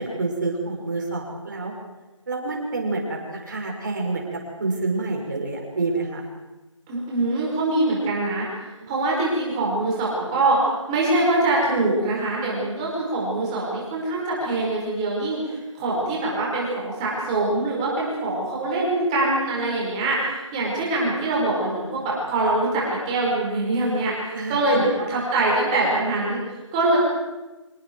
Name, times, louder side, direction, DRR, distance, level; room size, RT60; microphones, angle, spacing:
voice 1, 0.0-1.7 2.3-6.3 8.8-9.1 24.3-24.8, right 3 dB, 35° right, 0 dB, 5.8 m, -28 dB
voice 2, 6.9-8.4 8.9-27.0, right 2 dB, 10° right, -4 dB, 5.1 m, -24 dB
29.5 x 26.5 x 4.7 m, 1.1 s
figure-of-eight pair, 170°, 17 cm